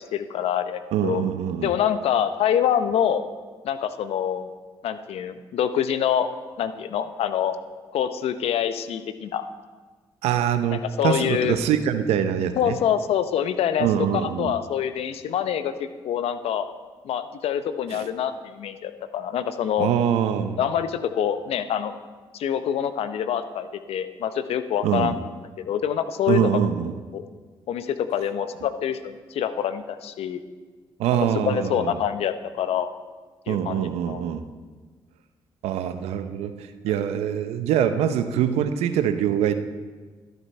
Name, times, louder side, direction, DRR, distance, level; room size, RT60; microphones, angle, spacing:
voice 1, 0.0-1.2 1.6-3.2 3.6-4.5 4.8-6.3 6.6-7.6 7.9-9.4 10.7-11.6 12.6-13.9 14.1-16.7 17.0-19.9 20.6-21.9 22.3-25.2 25.6-26.5 27.1-27.2 27.7-30.4 31.5-32.9 33.5-34.2 36.8-36.9, left 9 dB, 70° left, 11 dB, 0.7 m, -26 dB
voice 2, 0.9-1.7 10.2-12.8 13.8-14.5 17.9-18.1 19.8-20.6 24.8-25.1 26.3-26.9 31.0-32.0 33.5-34.4 35.6-39.5, right 9 dB, 80° right, 10 dB, 0.7 m, -24 dB
12.5 x 8.0 x 4.3 m, 1.4 s
supercardioid pair, 55°, 11 cm